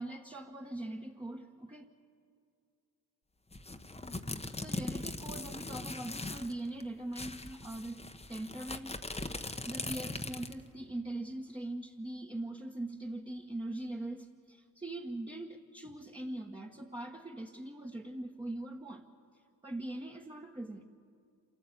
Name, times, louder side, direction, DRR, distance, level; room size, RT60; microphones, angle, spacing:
voice 1, 0.0-1.8 4.6-8.0 8.3-9.0 9.7-19.1 19.6-20.8, right 1 dB, 10° right, 0 dB, 1.4 m, -41 dB
sound 1, 3.5-6.5 6.8-6.9 7.1-10.7, left 2 dB, 15° left, 1.1 m, -40 dB
27.0 x 14.0 x 8.3 m, 2.4 s
supercardioid pair, 55°, 39 cm